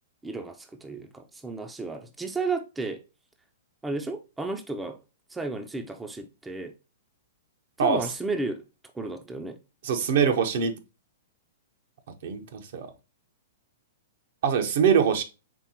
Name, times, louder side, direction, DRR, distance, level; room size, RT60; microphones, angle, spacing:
voice 1, 0.2-3.0 3.8-5.0 5.3-6.7 7.8-8.6 8.9-9.6, right 3 dB, 10° right, 0.5 m, -33 dB
voice 2, 9.8-10.8 12.2-12.9 14.4-15.2, right 7 dB, 60° right, 0.8 m, -23 dB
4.5 x 3.3 x 2.8 m
hypercardioid pair, 125°, 0 cm